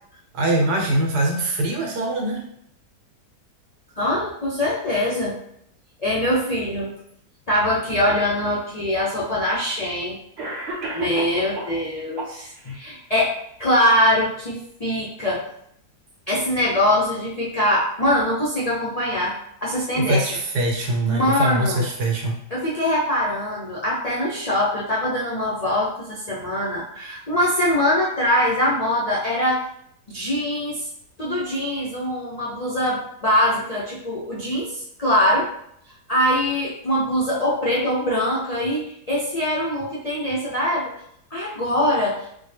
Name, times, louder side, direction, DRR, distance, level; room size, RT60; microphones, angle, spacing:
voice 1, 0.3-2.5 19.9-22.4, right 1 dB, 80° right, 1 dB, 1.3 m, -23 dB
voice 2, 4.0-5.4 6.0-6.9 7.5-10.2 10.9-15.4 16.3-19.3 19.6-20.2 21.0-21.8 22.5-29.6 30.1-30.9 31.2-35.5 36.1-40.9 41.3-42.2, left 1 dB, 65° left, -7 dB, 0.3 m, -23 dB
Cough, 8.7-8.8 9.8-9.9 10.4-11.8 12.2-12.8, right 2 dB, 45° right, 1.0 m, -32 dB
4.1 x 2.1 x 3.3 m, 0.71 s
omnidirectional pair, 1.7 m